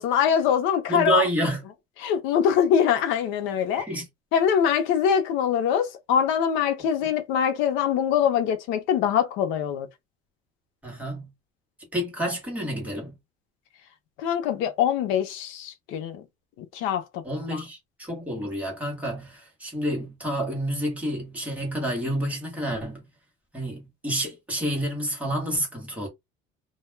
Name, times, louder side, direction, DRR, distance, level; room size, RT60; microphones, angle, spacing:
voice 1, 0.0-1.3 2.0-3.9 4.3-9.9 14.2-16.2 16.6-17.2 17.5-17.6, left 8 dB, 70° left, 0.6 m, -23 dB
voice 2, 0.9-1.6 3.8-4.1 10.8-11.3 11.9-13.1 17.2-23.1 23.5-26.1, equal, 5° right, 0.9 m, -29 dB
2.1 x 2.1 x 3.2 m
cardioid pair, 165°, 21 cm